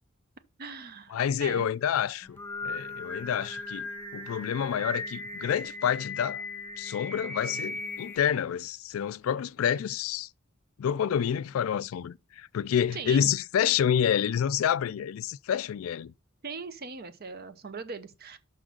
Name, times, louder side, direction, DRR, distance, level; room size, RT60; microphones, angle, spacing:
voice 1, 0.6-1.7 12.9-13.3 16.4-18.4, right 4 dB, 50° right, 0.8 m, -40 dB
voice 2, 1.1-6.4 6.8-10.3 10.8-16.1, left 8 dB, 85° left, 0.3 m, -28 dB
Singing, 2.2-8.2, left 2 dB, 10° left, 1.0 m, -38 dB
6.1 x 3.8 x 6.0 m
head